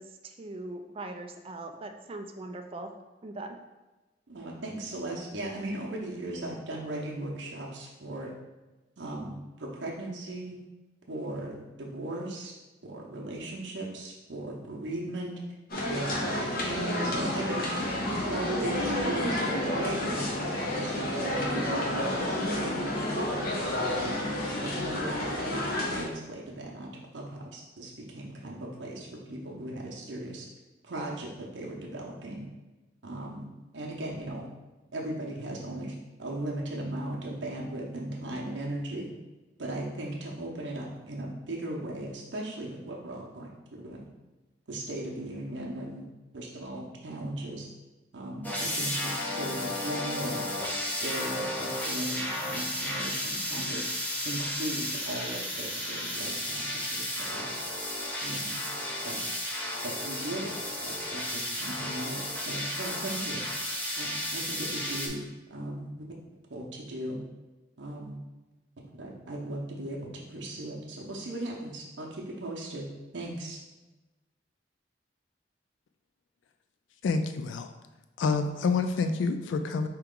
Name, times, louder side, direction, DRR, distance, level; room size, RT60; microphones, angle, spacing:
voice 1, 0.0-2.9 3.2-3.6, right 2 dB, 30° right, 5 dB, 0.4 m, -40 dB
voice 2, 4.3-8.3 9.0-10.6 11.1-12.5 12.8-15.4 15.9-17.7 18.3-23.4 24.0-25.6 25.9-30.5 30.8-32.4 33.0-33.5 33.7-34.5 34.9-39.1 39.6-44.1 44.7-46.1 46.3-47.7 48.1-50.4 51.0-53.8 54.2-57.5 58.2-58.5 59.0-59.2 59.8-60.5 60.8-65.2 65.5-65.9 66.5-67.2 67.8-68.2 69.0-72.9 73.1-73.6, right 1 dB, 80° right, -3 dB, 0.7 m, -37 dB
sound 1, 15.7-26.0, left 1 dB, 50° left, 0.9 m, -30 dB
sound 2, 48.4-65.1, left 1 dB, 10° left, 0.6 m, -33 dB
voice 3, 77.0-77.7 78.2-79.9, left 4 dB, 85° left, 8 dB, 0.3 m, -27 dB
4.6 x 2.9 x 3.7 m, 1.1 s
head